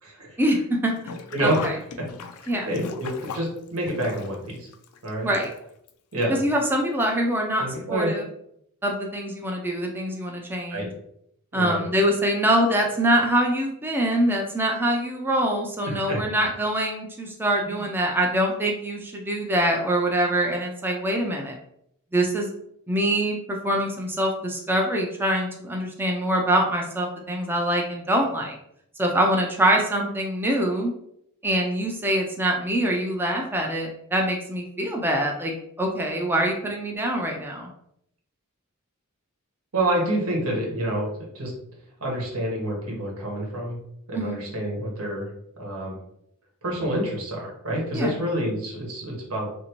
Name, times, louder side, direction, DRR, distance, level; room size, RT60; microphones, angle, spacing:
voice 1, 0.4-0.9 1.4-1.8 2.5-2.7 5.2-5.5 6.3-8.2 8.8-10.9 11.5-21.6 22.1-22.5 22.9-28.6 29.0-30.9 31.4-37.7 44.1-44.4 47.9-48.2, right 1 dB, 10° right, 0 dB, 0.4 m, -24 dB
Sink (filling or washing), 1.0-5.9 6.2-6.3 7.3-7.4 7.7-7.8, left 6 dB, 90° left, 0.4 m, -38 dB
voice 2, 1.3-1.7 2.4-4.7 5.0-5.3 6.1-6.4 7.6-8.1 10.7-10.9 11.5-11.8 15.8-16.2 17.6-17.8 39.7-41.1 41.3-41.5 42.0-43.8 44.1-45.3 45.6-46.0 46.6-49.5, right 1 dB, 90° right, -2 dB, 1.1 m, -27 dB
3.2 x 2.6 x 2.9 m, 0.74 s
head